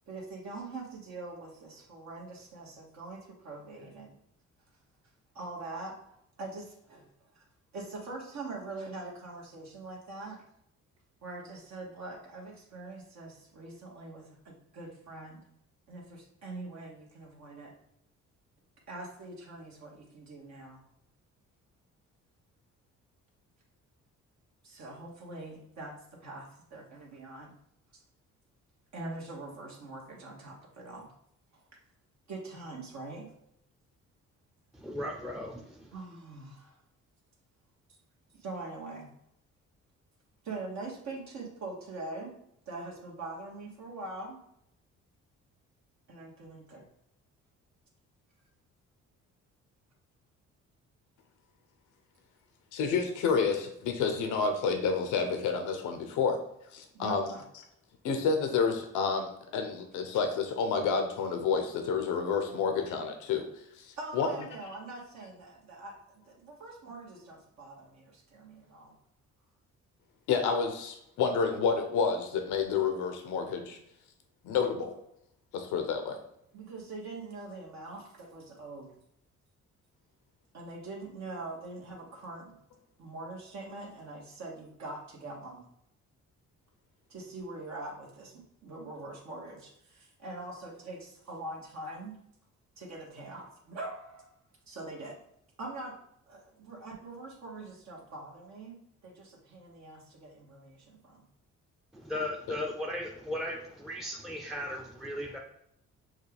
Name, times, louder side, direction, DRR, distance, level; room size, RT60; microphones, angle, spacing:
voice 1, 0.1-4.2 5.3-6.0 6.4-7.1 7.3-7.4 7.7-10.4 11.2-15.4 15.9-17.7 18.9-20.8 24.6-27.5 28.9-31.1 31.5-31.6 32.3-33.3 35.9-36.8 38.3-39.1 40.4-42.4 42.7-44.4 46.1-46.9 56.9-57.4 64.0-68.9 76.5-78.9 80.5-82.6 83.0-85.6 87.1-92.2 92.8-94.4 94.7-95.2 95.6-96.0 96.3-101.3, right 2 dB, 65° right, -2 dB, 1.2 m, -43 dB
voice 2, 34.7-35.9 101.9-105.4, left 1 dB, ahead, 0 dB, 0.5 m, -37 dB
voice 3, 52.7-56.4 56.7-57.3 58.0-63.5 63.8-64.3 70.3-73.8 74.4-74.9 75.5-76.2, left 5 dB, 90° left, 5 dB, 0.8 m, -29 dB
6.3 x 2.3 x 3.4 m, 0.76 s
cardioid pair, 90°, 30 cm